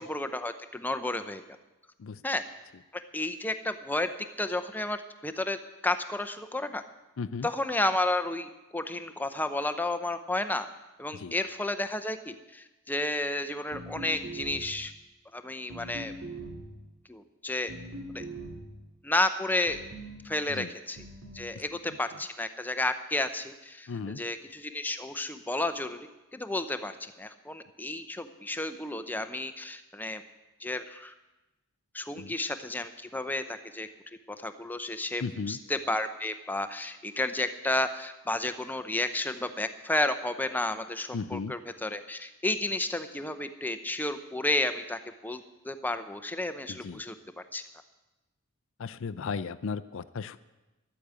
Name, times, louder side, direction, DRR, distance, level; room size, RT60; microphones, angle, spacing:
voice 1, 0.0-1.4 2.2-2.4 2.9-4.1 4.4-5.6 5.8-6.8 7.4-10.7 11.0-14.9 15.3-16.1 17.1-17.7 18.1-18.2 19.0-19.8 20.2-21.0 21.3-23.9 24.2-30.2 30.6-31.1 31.9-33.9 34.4-47.1 47.5-47.6, left 2 dB, 10° left, 10 dB, 0.6 m, -32 dB
voice 2, 7.2-7.5 11.1-11.3 20.5-20.7 21.9-22.0 23.9-24.2 32.2-32.3 35.2-35.6 41.1-41.5 46.7-47.0 48.8-50.4, left 5 dB, 60° left, 14 dB, 0.5 m, -35 dB
sound 1, 13.7-14.9 15.7-16.8 17.7-18.8 19.7-20.2 21.0-21.5, right 1 dB, 70° right, 2.1 m, -42 dB
12.0 x 8.5 x 8.1 m, 1.0 s
head